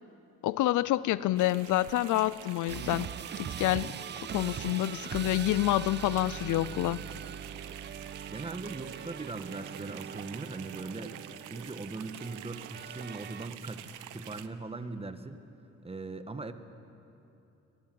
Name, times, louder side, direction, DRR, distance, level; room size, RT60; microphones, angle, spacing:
voice 1, 0.4-3.1 3.4-4.0 4.3-7.0, left 15 dB, 80° left, 19 dB, 0.6 m, -28 dB
sound 1, 1.4-14.5, right 12 dB, 85° right, 1.0 m, -47 dB
sound 2, 2.7-13.5, right 8 dB, 35° right, 0.6 m, -42 dB
voice 2, 8.3-11.2 11.5-15.4 15.8-16.5, right 3 dB, 20° right, 9 dB, 1.4 m, -40 dB
25.0 x 19.0 x 7.8 m, 2.8 s
cardioid pair, 90°, 30 cm